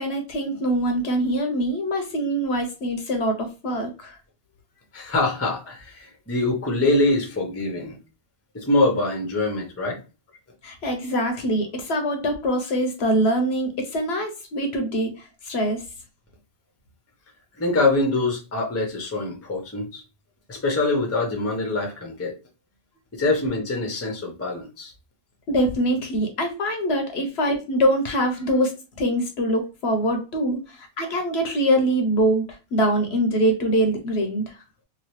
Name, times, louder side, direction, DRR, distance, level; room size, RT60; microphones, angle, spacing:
voice 1, 0.0-4.2 10.6-15.8 25.5-34.6, right 1 dB, 60° left, 0.8 m, -24 dB
voice 2, 4.9-8.0 8.5-10.0 17.6-20.0 20.5-22.4 23.1-24.9, left 2 dB, 15° left, 0.5 m, -24 dB
2.9 x 2.7 x 2.9 m
omnidirectional pair, 1.4 m